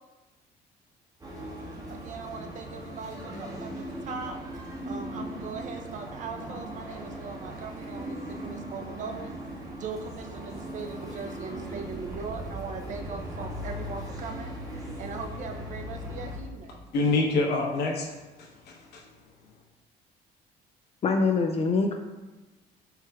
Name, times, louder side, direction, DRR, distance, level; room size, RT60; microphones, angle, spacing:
sound 1, 1.2-16.4, equal, 20° right, 0.9 m, -38 dB
voice 1, 1.9-4.4 4.8-9.4 9.8-16.9, right 4 dB, 50° right, 4 dB, 0.6 m, -40 dB
voice 2, 16.9-19.0, left 3 dB, 70° left, -1 dB, 1.0 m, -27 dB
voice 3, 21.0-21.9, left 4 dB, 35° left, 3 dB, 0.4 m, -24 dB
4.6 x 4.5 x 2.3 m, 1.1 s
cardioid pair, 110°, 17 cm